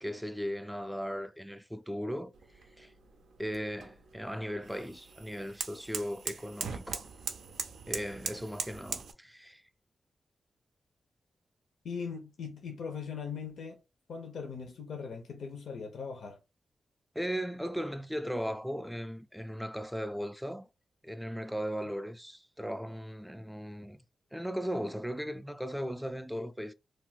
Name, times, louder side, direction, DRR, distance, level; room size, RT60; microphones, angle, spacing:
voice 1, 0.0-2.3 2.8-2.9 3.4-7.1 7.9-9.6 17.1-20.7 21.0-24.0 24.3-26.7, equal, ahead, 0.3 m, -37 dB
sound 1, 2.3-9.1, right 5 dB, 85° right, 0.4 m, -41 dB
voice 2, 11.8-13.8 14.1-16.4, left 6 dB, 80° left, 0.5 m, -40 dB
2.3 x 2.1 x 3.9 m
cardioid pair, 70°, 0 cm